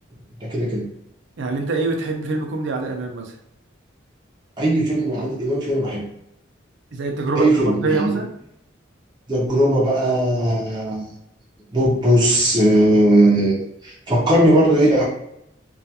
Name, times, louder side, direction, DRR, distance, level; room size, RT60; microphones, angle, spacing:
voice 1, 0.4-0.9 4.6-6.0 7.4-8.2 9.3-11.1 11.7-13.6 13.8-15.0, right 1 dB, 25° right, -5 dB, 0.6 m, -18 dB
voice 2, 1.4-3.4 6.9-8.3, right 3 dB, 65° right, 2 dB, 0.5 m, -24 dB
2.3 x 2.2 x 2.7 m, 0.76 s
head